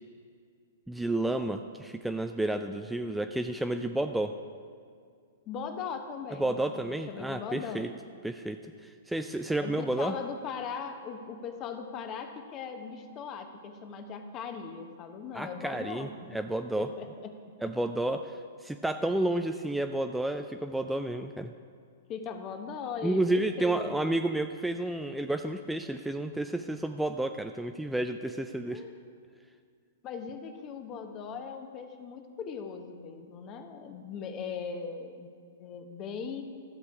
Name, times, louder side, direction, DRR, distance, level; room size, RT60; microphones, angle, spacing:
voice 1, 0.9-4.3 6.4-7.9 8.2-10.1 15.3-16.9 17.6-21.5 23.0-28.8, right 1 dB, 5° right, 6 dB, 0.4 m, -31 dB
voice 2, 5.5-7.9 9.6-16.1 16.8-17.3 22.1-24.0 28.6-29.0 30.0-35.3 35.6-36.4, left 6 dB, 35° left, 6 dB, 1.0 m, -39 dB
13.0 x 6.8 x 4.8 m, 2.2 s
hypercardioid pair, 120°, 0 cm